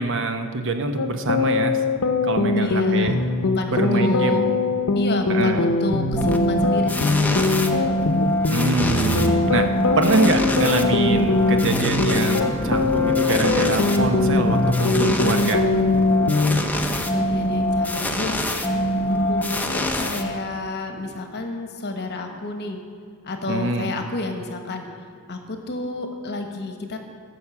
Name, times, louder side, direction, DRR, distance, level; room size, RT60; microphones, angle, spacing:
voice 1, 0.0-1.8 2.2-3.1 3.7-4.5 5.3-5.7 8.5-9.7 9.9-15.7 23.5-23.9, right 2 dB, 60° right, 6 dB, 1.0 m, -24 dB
sound 1, 1.0-16.6, left 3 dB, 70° left, 0.7 m, -22 dB
voice 2, 2.6-4.4 4.9-8.0 16.6-18.4 19.0-22.8 23.2-24.8 25.3-27.0, left 3 dB, 50° left, 5 dB, 1.2 m, -30 dB
sound 2, 6.1-20.8, equal, 10° left, 0.8 m, -24 dB
14.0 x 6.2 x 7.1 m, 2.3 s
head